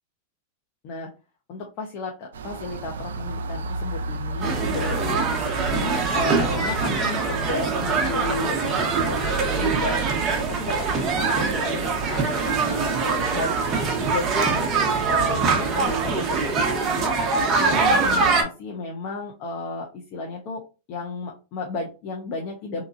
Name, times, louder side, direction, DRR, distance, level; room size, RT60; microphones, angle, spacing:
voice 1, 1.5-5.4 5.7-10.0 10.3-13.5 14.0-17.1 17.5-20.6 20.9-22.8, left 3 dB, 45° left, 0 dB, 0.9 m, -33 dB
sound 1, 2.3-16.7, right 4 dB, 90° right, 0.5 m, -34 dB
sound 2, 4.4-18.4, right 4 dB, 30° right, 1.0 m, -23 dB
3.7 x 3.0 x 2.6 m, 0.30 s
hypercardioid pair, 120°, 0 cm